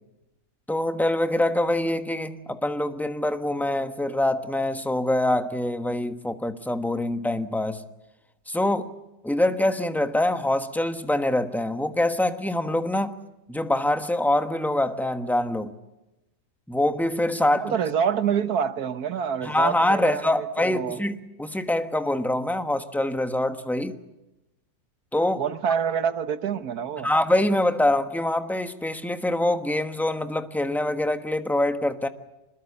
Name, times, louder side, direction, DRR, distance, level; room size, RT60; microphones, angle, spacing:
voice 1, 0.7-7.8 8.5-8.9 9.2-13.2 13.5-15.7 16.7-17.7 19.4-24.0 25.1-25.4 27.0-32.1, left 1 dB, ahead, 7 dB, 1.1 m, -24 dB
voice 2, 17.5-21.0 25.4-27.1, right 7 dB, 90° right, 11 dB, 1.7 m, -27 dB
26.0 x 21.0 x 8.4 m, 0.96 s
omnidirectional pair, 1.6 m